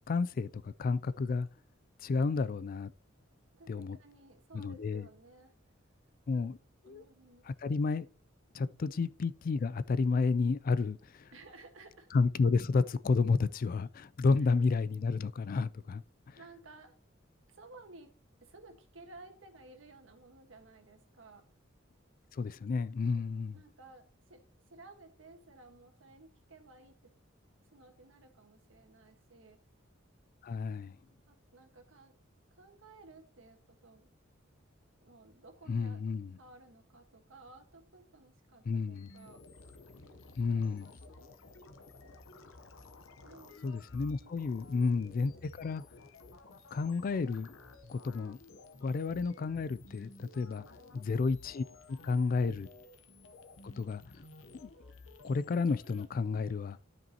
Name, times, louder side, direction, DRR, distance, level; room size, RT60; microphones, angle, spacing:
voice 1, 0.1-1.5 2.0-2.9 3.7-4.0 4.5-5.1 6.3-6.6 6.9-7.0 7.5-8.1 8.5-11.3 12.1-16.4 22.3-23.6 30.4-31.0 35.7-36.3 38.7-39.1 40.4-40.9 43.6-45.8 46.7-47.5 47.9-48.4 48.8-50.6 50.9-51.6 52.0-52.7 53.6-54.0 54.5-54.7 55.2-56.8, left 4 dB, 45° left, 0.3 m, -31 dB
voice 2, 3.5-5.5 6.3-6.5 6.8-7.4 8.5-9.1 11.3-12.1 14.4-14.5 16.3-16.9 17.5-18.1 18.4-21.5 23.1-23.3 23.5-24.4 24.7-27.1 27.6-29.6 31.3-32.1 32.5-34.1 35.0-36.0 36.4-39.4 43.2-43.6 44.2-44.7 50.2-50.8, right 3 dB, 80° right, 1.4 m, -56 dB
sound 1, 38.9-56.1, left 2 dB, 90° left, 0.8 m, -54 dB
12.5 x 5.2 x 2.9 m
head